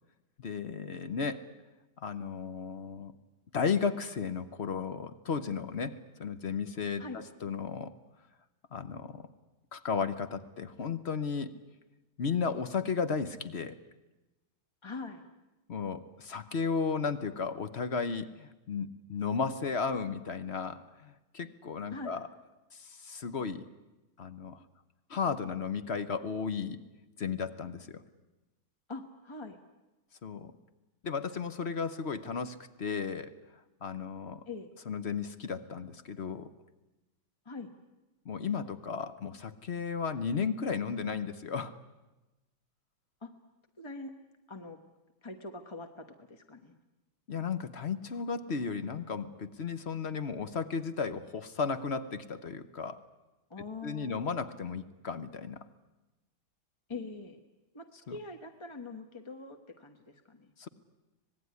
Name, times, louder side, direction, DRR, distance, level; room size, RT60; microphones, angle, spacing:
voice 1, 0.4-1.5 2.0-3.1 3.5-7.9 8.7-9.3 9.7-11.5 12.2-13.8 15.7-22.3 22.7-23.7 24.2-24.6 25.1-26.8 27.2-28.0 30.2-30.5 31.0-33.4 33.8-34.5 34.9-36.5 38.2-41.8 47.3-53.0 53.8-55.7 60.6-60.7, left 5 dB, 45° left, 12 dB, 0.9 m, -34 dB
voice 2, 14.8-15.3 21.9-22.2 28.9-29.6 34.5-34.7 37.4-37.7 43.2-43.3 43.8-44.1 44.5-44.8 45.2-46.8 53.5-54.2 56.9-57.4 57.7-60.5, left 3 dB, 20° left, 6 dB, 0.9 m, -43 dB
25.5 x 19.5 x 9.5 m, 1.0 s
omnidirectional pair, 2.2 m